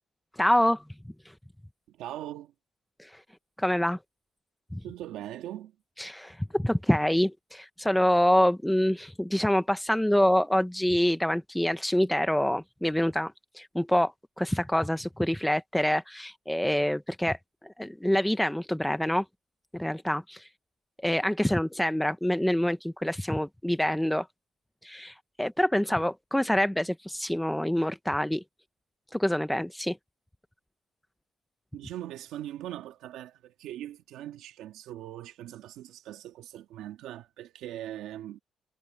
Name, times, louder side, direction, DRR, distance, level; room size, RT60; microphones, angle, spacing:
voice 1, 0.4-0.8 3.0-3.2 3.6-4.0 4.7-4.8 6.0-17.4 17.6-19.2 19.7-20.5 21.0-24.3 24.8-28.4 29.1-30.0, left 1 dB, 5° left, 0.7 m, -26 dB
voice 2, 1.9-2.5 4.8-5.8 31.7-38.4, right 13 dB, 90° right, 1.8 m, -41 dB
cardioid pair, 90°, 0 cm